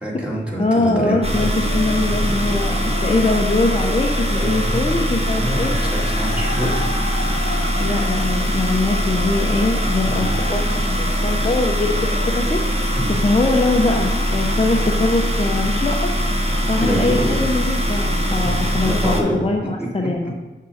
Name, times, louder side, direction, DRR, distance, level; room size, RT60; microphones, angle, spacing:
voice 1, 0.0-1.5 1.8-2.2 2.5-2.6 3.1-3.4 4.4-4.9 5.3-6.8 7.7-8.1 10.1-10.3 13.0-13.2 16.8-17.5 18.4-19.5 19.8-19.9 20.2-20.4, right 1 dB, 5° right, -4 dB, 2.0 m, -26 dB
voice 2, 0.6-5.8 7.8-12.6 13.2-16.1 16.7-20.3, left 2 dB, 30° left, 0 dB, 0.7 m, -22 dB
sound 1, 1.2-19.2, equal, 30° right, 1.1 m, -21 dB
sound 2, 1.6-19.3, left 2 dB, 50° left, 1.0 m, -35 dB
7.1 x 3.7 x 6.3 m, 1.2 s
wide cardioid pair, 85°, 20 cm